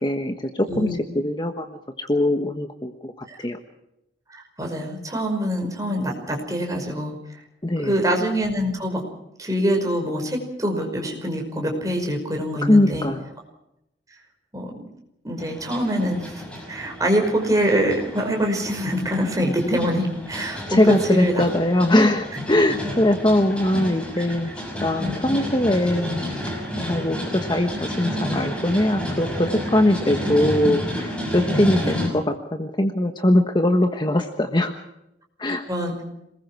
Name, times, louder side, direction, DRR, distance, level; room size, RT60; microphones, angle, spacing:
voice 1, 0.0-3.1 3.4-3.6 7.6-8.0 12.6-13.3 20.7-24.5 24.8-26.2 26.8-34.7 35.4-35.6, left 1 dB, 25° left, 5 dB, 1.4 m, -21 dB
voice 2, 4.3-7.2 7.8-9.0 9.4-13.1 14.5-14.8 15.2-21.4 25.0-25.2 31.8-32.0 35.7-36.0, equal, 20° right, 2 dB, 5.5 m, -24 dB
sound 1, 15.4-32.1, equal, 5° left, 6.3 m, -30 dB
27.0 x 20.5 x 4.8 m, 0.83 s
head